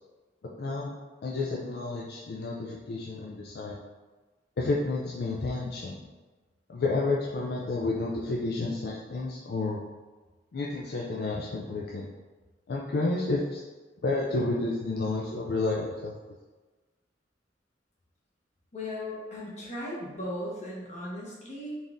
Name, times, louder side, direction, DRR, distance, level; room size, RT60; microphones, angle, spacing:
voice 1, 0.6-0.9 1.2-3.8 4.6-6.0 6.7-9.8 10.5-12.1 12.7-13.6 14.0-16.1, left 3 dB, 60° left, -3 dB, 0.4 m, -30 dB
voice 2, 18.7-21.8, left 1 dB, 40° left, -5 dB, 1.1 m, -37 dB
4.0 x 2.5 x 3.5 m, 1.3 s
head